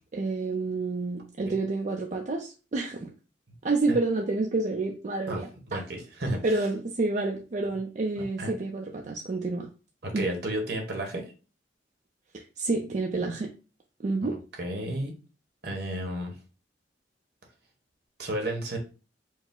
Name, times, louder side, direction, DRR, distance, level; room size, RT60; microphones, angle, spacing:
voice 1, 0.1-3.1 3.6-5.8 6.4-9.7 10.1-10.3 12.3-13.5 14.0-14.4, right 3 dB, 45° right, 1 dB, 0.4 m, -29 dB
voice 2, 5.3-6.4 8.4-8.5 10.0-11.3 14.2-14.3 14.6-15.2 15.6-16.4 18.2-18.8, right 1 dB, 65° right, 2 dB, 1.2 m, -32 dB
4.7 x 2.0 x 3.7 m, 0.34 s
head